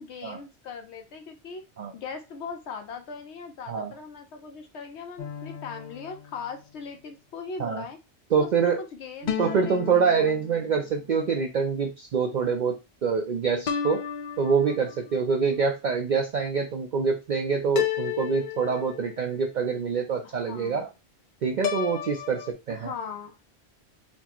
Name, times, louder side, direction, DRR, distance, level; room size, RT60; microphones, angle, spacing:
voice 1, 0.0-1.6 1.9-8.0 8.4-10.3 20.2-20.8 22.7-23.3, left 5 dB, 85° left, 5 dB, 1.0 m, -39 dB
sound 1, 5.2-6.9 9.3-11.0 13.7-15.2 17.8-19.4 21.6-22.5, left 9 dB, 55° left, 0.5 m, -33 dB
voice 2, 8.3-8.8 9.4-14.0 14.4-20.9 21.4-22.9, right 5 dB, 55° right, 3 dB, 0.6 m, -25 dB
4.3 x 2.0 x 4.3 m, 0.27 s
omnidirectional pair, 1.1 m